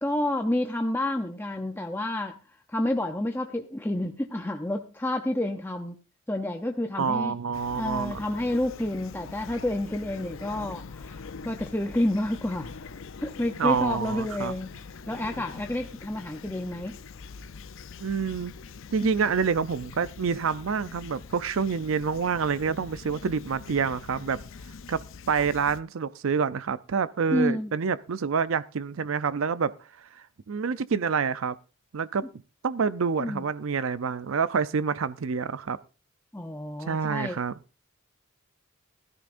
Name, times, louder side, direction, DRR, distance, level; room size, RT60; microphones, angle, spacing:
voice 1, 0.0-6.0 6.3-7.4 7.7-12.8 13.2-14.7 15.1-17.0 19.0-19.1 27.3-27.7 33.2-33.4 36.3-37.4, left 1 dB, 10° left, 0.6 m, -29 dB
voice 2, 7.0-8.2 13.6-14.5 18.0-18.5 18.9-24.4 24.9-29.7 30.5-31.5 31.9-32.2 32.6-35.8 36.8-37.5, right 6 dB, 70° right, 0.5 m, -27 dB
Fowl / Chirp tweet, 7.5-25.8, left 5 dB, 65° left, 0.6 m, -44 dB
16.0 x 13.5 x 2.5 m
head